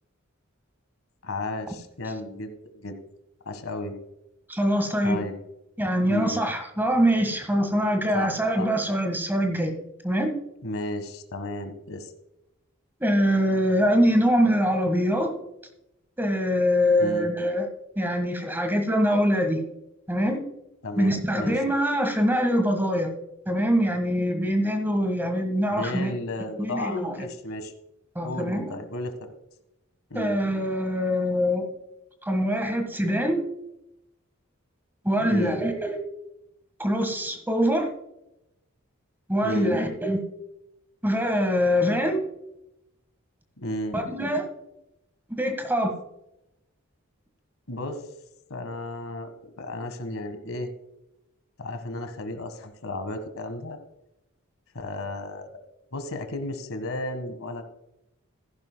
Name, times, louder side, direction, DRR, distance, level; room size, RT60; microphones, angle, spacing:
voice 1, 1.2-3.0 3.4-4.0 5.0-5.4 6.1-6.4 8.1-8.7 10.6-12.1 17.0-17.3 20.8-21.6 23.9-24.0 25.7-27.7 28.2-29.1 30.1-30.4 35.2-35.6 39.4-39.8 43.6-44.0 47.7-48.0 48.5-50.7 51.6-53.8 54.7-55.6 55.9-57.6, left 1 dB, 75° left, 8 dB, 1.6 m, -33 dB
voice 2, 4.5-5.2 5.8-9.7 10.0-10.3 13.0-15.3 16.2-17.7 17.9-19.6 20.1-20.4 21.0-23.1 23.5-26.1 26.6-27.3 28.1-28.7 30.1-31.7 32.2-33.4 35.0-36.0 36.8-37.9 39.3-40.2 41.0-42.2 43.9-44.5 45.3-45.9, equal, 10° right, 5 dB, 1.6 m, -24 dB
14.5 x 11.0 x 2.3 m, 0.87 s
head